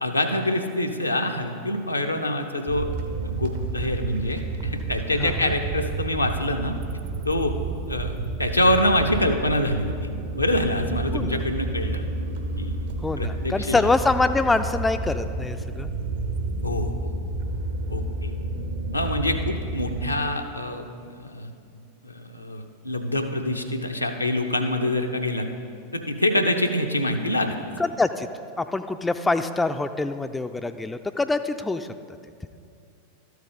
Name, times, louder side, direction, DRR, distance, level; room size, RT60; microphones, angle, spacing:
voice 1, 0.0-2.9 3.2-6.7 7.2-7.6 7.9-9.9 10.4-12.0 12.6-12.8 13.2-13.9 16.6-17.1 17.9-18.3 18.9-21.5 22.0-25.5 25.9-27.6, left 1 dB, 85° left, 4 dB, 0.6 m, -25 dB
sound 1, 2.7-20.1, right 2 dB, 55° right, 0.7 m, -30 dB
voice 2, 5.2-5.5 11.1-11.4 13.0-15.9 27.8-28.3 28.6-31.9, left 3 dB, 10° left, 9 dB, 0.3 m, -25 dB
12.5 x 4.7 x 5.1 m, 2.4 s
figure-of-eight pair, 90°, 0 cm